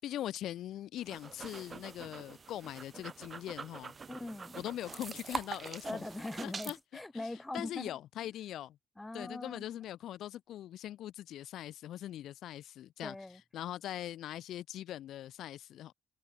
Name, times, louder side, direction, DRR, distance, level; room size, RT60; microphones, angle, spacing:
voice 1, 0.0-3.9 4.6-6.0 6.4-6.8 7.1-8.8 9.1-13.2 13.5-15.9, left 12 dB, 70° left, 7.8 m, -41 dB
sound 1, 1.0-6.8, right 5 dB, 40° right, 4.2 m, -44 dB
voice 2, 4.1-4.6 5.8-8.0 9.0-9.6 13.0-13.4, left 2 dB, 15° left, 6.3 m, -41 dB
supercardioid pair, 60°, 0 cm